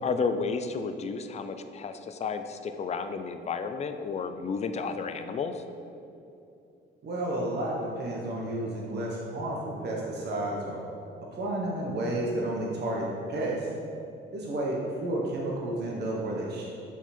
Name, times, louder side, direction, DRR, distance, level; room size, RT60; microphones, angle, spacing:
voice 1, 0.0-5.6, left 5 dB, 35° left, 8 dB, 0.4 m, -32 dB
voice 2, 7.0-10.8 11.3-13.7 14.3-16.6, right 1 dB, 55° right, -3 dB, 1.0 m, -31 dB
5.7 x 4.5 x 4.2 m, 2.7 s
cardioid pair, 90°, 20 cm